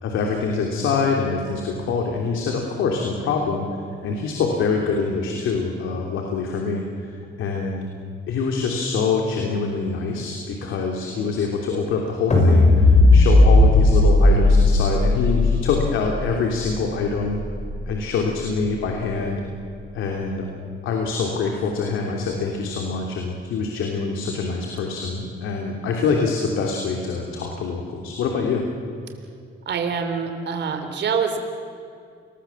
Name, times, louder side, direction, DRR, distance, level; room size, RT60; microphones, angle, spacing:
voice 1, 0.0-3.6 4.0-7.1 7.4-7.8 8.3-17.4 17.9-19.4 19.9-20.5 20.8-28.6, left 4 dB, 85° left, 1 dB, 3.3 m, -25 dB
sound 1, 12.3-18.6, left 2 dB, 35° left, 7.3 m, -17 dB
voice 2, 29.6-31.4, right 6 dB, 60° right, 6 dB, 3.3 m, -25 dB
29.0 x 21.0 x 7.4 m, 2.4 s
cardioid pair, 90°, 20 cm